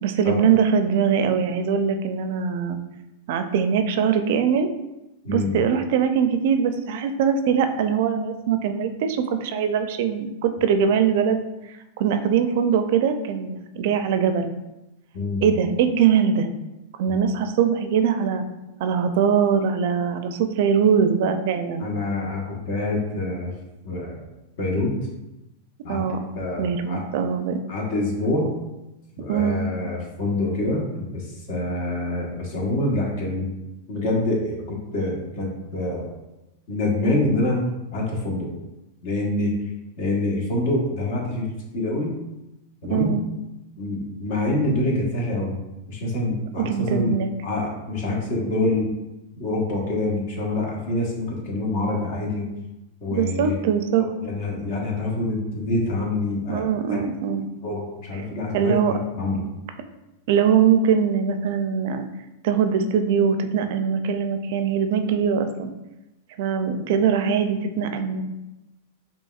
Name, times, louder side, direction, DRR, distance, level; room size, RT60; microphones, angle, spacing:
voice 1, 0.0-2.8 3.3-4.7 5.3-11.4 12.0-14.5 15.4-16.5 17.0-18.4 18.8-21.8 25.9-26.3 26.6-27.7 29.3-29.6 42.9-43.2 46.6-47.3 53.1-54.0 56.5-57.5 58.1-58.2 58.5-59.0 59.3-59.5 60.3-62.1 62.4-65.7 66.4-68.2, right 7 dB, 65° right, 8 dB, 0.4 m, -22 dB
voice 2, 5.2-5.6 15.1-15.5 17.1-17.2 21.8-23.5 23.8-24.2 24.6-25.0 25.8-26.0 26.3-27.0 27.7-28.5 29.2-33.5 33.9-36.1 36.7-37.6 37.9-38.5 39.0-39.6 40.0-41.5 41.7-42.1 42.8-43.1 43.8-45.6 45.9-47.1 47.4-48.9 49.4-52.5 53.0-53.5 54.2-57.0 57.6-59.4, left 2 dB, 60° left, -1 dB, 1.3 m, -26 dB
5.2 x 2.8 x 2.4 m, 0.97 s
hypercardioid pair, 120°, 0 cm